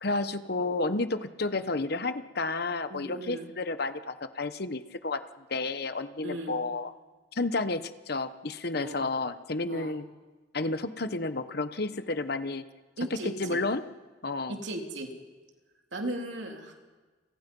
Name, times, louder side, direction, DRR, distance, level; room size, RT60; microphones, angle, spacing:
voice 1, 0.0-6.9 7.3-10.1 10.5-12.6 13.1-13.8 14.2-14.6, left 3 dB, 55° left, 11 dB, 1.1 m, -31 dB
voice 2, 2.9-3.5 6.2-6.6 8.8-9.1 9.7-9.9 13.0-13.6 14.5-15.1 15.9-16.7, right 1 dB, 70° right, 2 dB, 3.4 m, -36 dB
30.0 x 25.5 x 5.5 m, 1.3 s
head